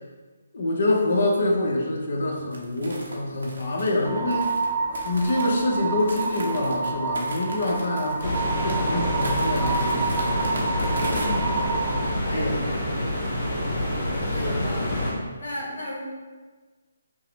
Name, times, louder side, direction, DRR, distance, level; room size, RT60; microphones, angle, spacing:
voice 1, 0.5-4.6 5.0-10.2 12.3-12.6 14.4-14.8, left 1 dB, 55° left, -1 dB, 0.8 m, -26 dB
sound 1, 2.5-11.3, right 2 dB, 70° right, 0.8 m, -37 dB
sound 2, 4.0-12.1, right 4 dB, 10° right, 0.3 m, -29 dB
sound 3, 8.2-15.1, left 1 dB, 20° left, 1.4 m, -27 dB
voice 2, 11.0-11.5 12.2-12.6 14.1-15.0 15.4-16.0, left 2 dB, 70° left, -4 dB, 1.1 m, -34 dB
5.4 x 2.0 x 3.2 m, 1.4 s
hypercardioid pair, 170°, 0 cm